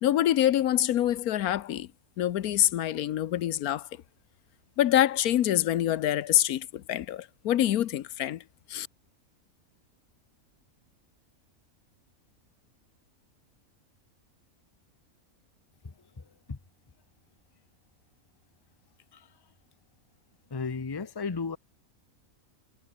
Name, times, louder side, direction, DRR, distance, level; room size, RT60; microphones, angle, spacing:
voice 1, 0.0-1.9 2.2-3.9 4.8-8.4 8.7-8.9, left 12 dB, 85° left, 1.3 m, -25 dB
voice 2, 15.8-16.6 19.1-19.3 20.5-21.6, left 4 dB, 20° left, 0.7 m, -35 dB
omnidirectional pair, 1.5 m